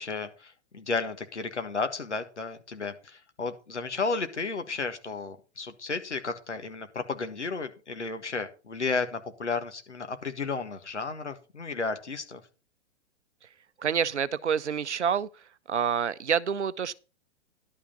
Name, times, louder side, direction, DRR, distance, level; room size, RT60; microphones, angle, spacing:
voice 1, 0.0-12.4, left 4 dB, 80° left, 1.6 m, -33 dB
voice 2, 13.8-15.3 15.7-16.9, right 7 dB, 80° right, 0.7 m, -27 dB
11.5 x 5.6 x 5.5 m
figure-of-eight pair, 110°, 35 cm